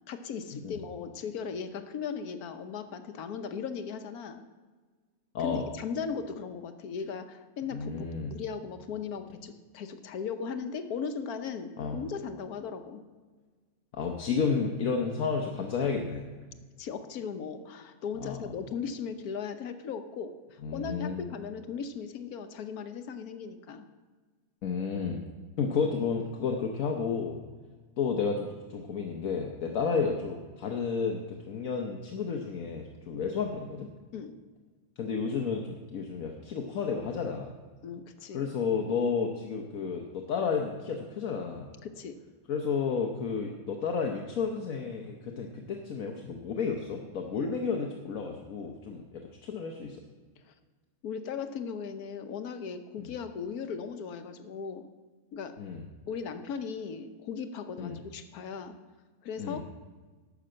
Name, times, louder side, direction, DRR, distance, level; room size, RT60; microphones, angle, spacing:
voice 1, 0.1-4.4 5.4-13.0 16.8-23.8 34.1-34.3 37.8-38.4 41.8-42.2 50.5-50.6 51.0-54.9 55.3-55.6 56.1-58.7 59.2-59.6, left 6 dB, 90° left, 9 dB, 1.4 m, -37 dB
voice 2, 7.7-8.3 11.8-12.0 13.9-16.3 18.2-18.4 20.6-21.2 24.6-25.2 25.6-27.4 28.0-33.9 35.0-37.5 38.3-41.7 42.5-50.0 53.0-53.1 55.6-55.9 57.8-58.0 59.4-59.6, left 5 dB, 70° left, 2 dB, 1.3 m, -31 dB
12.0 x 6.0 x 7.6 m, 1.4 s
omnidirectional pair, 1.5 m